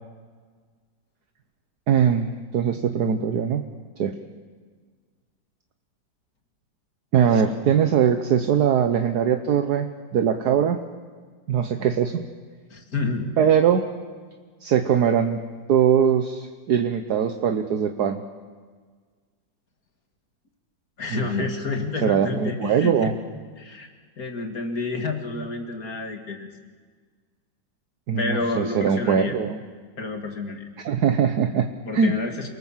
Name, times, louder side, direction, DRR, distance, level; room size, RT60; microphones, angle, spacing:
voice 1, 1.9-3.6 4.0-4.2 7.1-10.8 11.5-12.2 13.4-13.8 14.6-15.4 15.7-18.2 21.1-21.5 22.0-23.1 28.1-29.6 30.8-32.1, right 8 dB, 65° right, 7 dB, 1.4 m, -21 dB
voice 2, 12.7-13.4 21.0-23.2 23.6-23.9 24.2-26.5 28.2-29.3 30.0-30.7 31.9-32.5, left 3 dB, 50° left, 4 dB, 2.7 m, -29 dB
28.0 x 19.5 x 7.4 m, 1.5 s
omnidirectional pair, 2.0 m